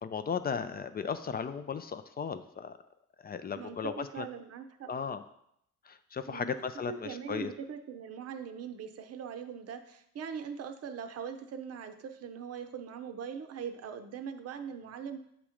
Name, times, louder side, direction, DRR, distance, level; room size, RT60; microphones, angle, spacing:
voice 1, 0.0-2.8 3.2-4.2 4.9-5.2 5.9-7.5, left 6 dB, 30° left, 10 dB, 0.4 m, -36 dB
voice 2, 3.6-4.9 6.3-6.6 6.9-15.2, right 7 dB, 55° right, 8 dB, 0.6 m, -41 dB
7.1 x 3.0 x 4.9 m, 0.74 s
cardioid pair, 90°, 30 cm